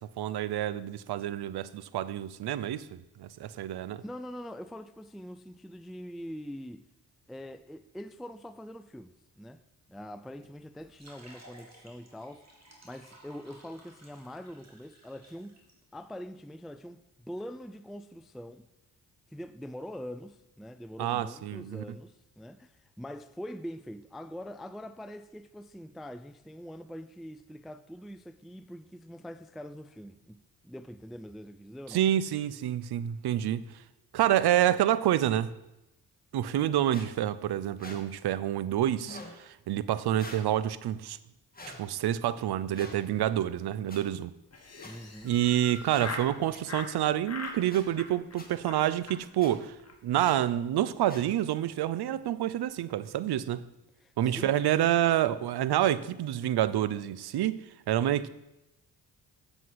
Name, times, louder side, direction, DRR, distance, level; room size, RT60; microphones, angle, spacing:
voice 1, 0.2-4.0 21.0-21.8 31.9-33.8 34.1-35.5 36.3-41.2 41.8-44.3 45.2-49.7 50.0-53.6 54.2-58.3, right 12 dB, 70° right, 0.6 m, -28 dB
voice 2, 4.0-6.9 7.3-9.6 9.9-12.4 12.8-15.6 15.9-18.7 19.3-32.1 44.8-45.3 54.0-54.5, equal, ahead, 0.4 m, -43 dB
sound 1, 10.8-15.7, right 2 dB, 40° right, 2.7 m, -56 dB
sound 2, 36.9-37.1 37.8-38.0 39.0-39.3 40.2-40.5 41.5-41.8 42.7-43.0 43.9-44.0 44.8-44.9 45.9-46.1 46.5-46.6 47.7-47.8 48.4-48.5 49.4-49.5 50.2-50.4 51.1-51.3, left 2 dB, 20° left, 2.1 m, -45 dB
Laughter, 44.5-46.3 46.7-46.9 47.2-47.6 47.9-48.4 48.6-48.8 49.1-49.2 49.4-49.5 49.8-49.9 50.2-50.5, left 3 dB, 40° left, 1.6 m, -41 dB
8.0 x 7.6 x 4.7 m
supercardioid pair, 55°, 40 cm